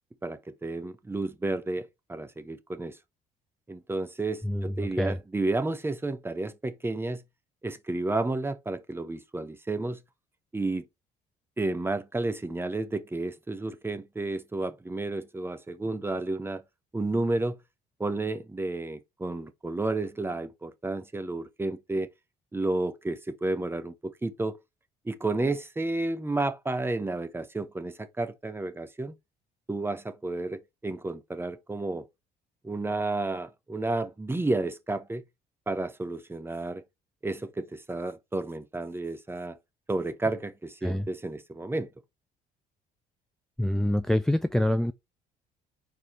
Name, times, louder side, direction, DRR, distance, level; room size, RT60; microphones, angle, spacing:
voice 1, 0.2-3.0 3.7-7.2 7.6-10.0 10.5-10.8 11.6-16.6 16.9-17.6 18.0-22.1 22.5-24.6 25.0-29.1 29.7-32.1 32.6-35.2 35.7-36.8 37.2-39.6 39.9-41.9, right 2 dB, 15° right, 1.0 m, -31 dB
voice 2, 4.4-5.2 40.8-41.1 43.6-44.9, left 1 dB, 5° left, 0.4 m, -26 dB
4.8 x 4.6 x 5.5 m
cardioid pair, 110°, 17 cm